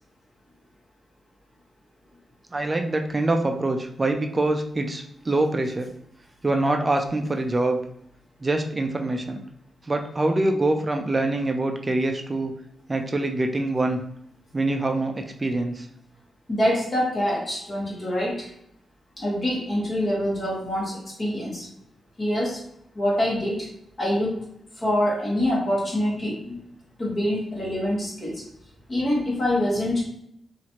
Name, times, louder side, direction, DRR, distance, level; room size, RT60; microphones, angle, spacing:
voice 1, 2.5-5.9 6.4-7.8 8.4-9.4 9.8-12.5 12.9-14.0 14.5-15.9, right 2 dB, 25° right, 4 dB, 0.3 m, -24 dB
voice 2, 16.5-18.5 19.2-21.7 22.2-22.6 22.9-23.7 24.0-24.4 24.8-26.6 27.0-28.4 28.9-30.0, left 1 dB, 35° left, -4 dB, 1.3 m, -25 dB
2.9 x 2.5 x 2.8 m, 0.75 s
cardioid pair, 95°, 0 cm